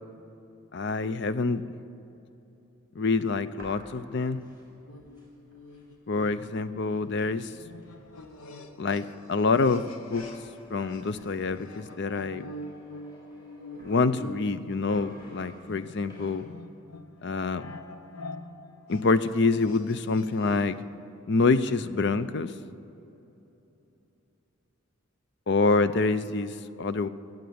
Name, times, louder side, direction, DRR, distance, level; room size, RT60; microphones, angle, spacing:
voice 1, 0.7-1.6 3.0-4.4 6.1-7.5 8.8-10.2 10.7-12.5 13.8-16.5 17.2-17.7 18.9-20.7 21.3-22.5 25.5-27.1, left 3 dB, 55° left, 13 dB, 0.5 m, -26 dB
sound 1, 3.5-6.0 6.4-6.5 6.7-12.0 12.5-14.6 14.9-16.3, equal, 20° left, 4.2 m, -51 dB
sound 2, 4.9-10.6 10.9-20.9, left 2 dB, 80° left, 1.0 m, -46 dB
18.5 x 8.0 x 8.6 m, 3.0 s
head